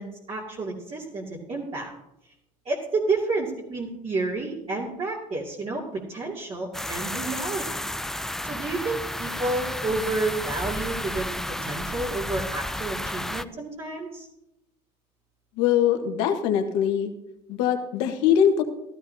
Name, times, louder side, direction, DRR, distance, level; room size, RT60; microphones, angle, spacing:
voice 1, 0.0-1.9 2.6-7.8 8.4-14.3, right 3 dB, 40° right, -5 dB, 2.6 m, -30 dB
sound 1, 6.7-13.4, left 1 dB, 5° left, 0.4 m, -32 dB
voice 2, 15.6-17.1 17.5-18.6, left 9 dB, 85° left, 5 dB, 1.5 m, -22 dB
15.0 x 13.0 x 2.8 m, 0.86 s
supercardioid pair, 90°, 15 cm